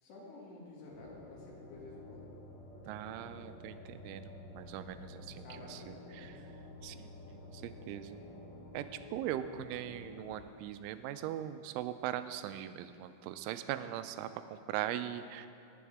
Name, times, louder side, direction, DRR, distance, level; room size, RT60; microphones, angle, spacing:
voice 1, 0.0-2.2 5.4-6.4, left 2 dB, 65° left, -4 dB, 3.9 m, -51 dB
sound 1, 0.9-10.4, left 2 dB, 45° left, 2.6 m, -51 dB
voice 2, 2.9-5.4 5.7-5.8 6.1-6.4 6.8-8.2 8.7-8.9 9.1-15.5, right 12 dB, 85° right, 11 dB, 2.9 m, -40 dB
18.5 x 7.2 x 3.5 m, 2.7 s
omnidirectional pair, 5.6 m